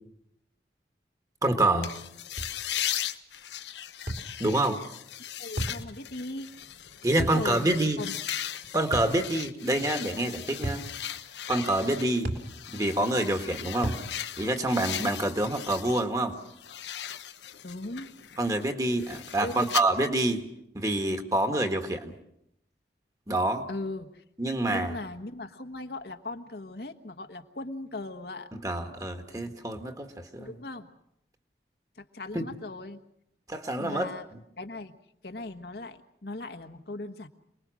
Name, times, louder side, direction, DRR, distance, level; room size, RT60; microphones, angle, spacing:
voice 1, 1.4-1.9 4.4-4.8 7.0-8.0 8.7-10.9 11.5-12.3 12.7-14.0 14.4-16.4 18.4-20.4 20.7-22.1 23.3-23.7 24.4-24.9 28.6-30.5 32.3-32.4 33.5-34.1, right 1 dB, 20° right, 6 dB, 1.7 m, -27 dB
sound 1, 1.8-16.1 16.4-19.8, left 11 dB, 85° left, 1.1 m, -38 dB
sound 2, 2.4-2.6 4.1-4.3 5.6-5.8 7.2-7.4 8.9-9.2 10.6-10.9 12.2-12.5 13.8-14.1, right 1 dB, 60° right, 3.4 m, -32 dB
voice 2, 5.4-6.5 7.2-8.2 17.6-18.1 19.4-19.7 23.7-24.2 24.7-28.5 30.4-30.9 32.0-33.0 33.8-34.3 34.6-34.9 35.2-37.3, left 2 dB, 65° left, 6 dB, 1.4 m, -38 dB
28.0 x 20.5 x 6.4 m, 0.78 s
head